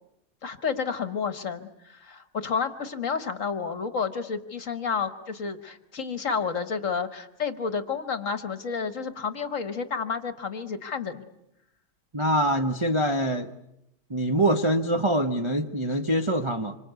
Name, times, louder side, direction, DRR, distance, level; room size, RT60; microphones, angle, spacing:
voice 1, 0.4-11.2, left 5 dB, 45° left, 11 dB, 1.4 m, -30 dB
voice 2, 12.1-13.5 14.1-16.8, right 1 dB, 40° right, 3 dB, 0.4 m, -24 dB
26.5 x 25.0 x 8.1 m, 0.84 s
omnidirectional pair, 2.3 m